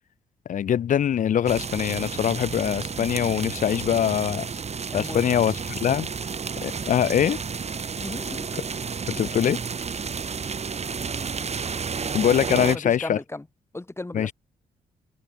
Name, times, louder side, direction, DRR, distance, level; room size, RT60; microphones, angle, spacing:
voice 1, 0.4-4.5 4.9-6.1 6.6-7.4 8.5-8.6 9.1-9.6 12.1-13.2 14.1-14.3, left 9 dB, 60° left, 1.1 m, -23 dB
sound 1, 1.5-12.8, right 5 dB, 45° right, 5.9 m, -31 dB
voice 2, 8.0-8.5 12.6-13.4 13.7-14.3, left 2 dB, 15° left, 3.3 m, -35 dB
supercardioid pair, 50°, 15 cm